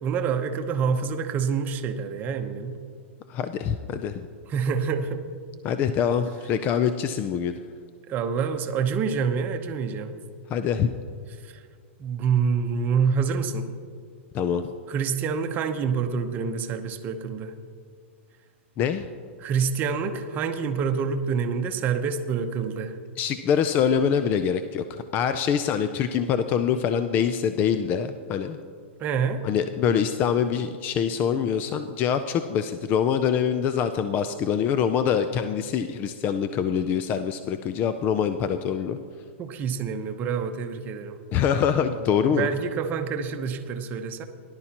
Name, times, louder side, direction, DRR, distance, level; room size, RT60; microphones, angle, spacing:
voice 1, 0.0-2.8 4.5-5.2 8.1-10.1 11.4-11.6 12.0-13.7 14.9-17.5 19.4-23.0 29.0-29.4 39.4-41.2 42.3-44.2, right 6 dB, 25° right, 6 dB, 0.8 m, -27 dB
voice 2, 3.3-4.3 5.6-7.5 10.5-10.9 14.3-14.6 18.8-19.1 23.2-28.6 29.4-39.0 41.3-42.5, left 8 dB, 25° left, 10 dB, 0.4 m, -24 dB
18.0 x 11.0 x 2.9 m, 2.2 s
hypercardioid pair, 150°, 7 cm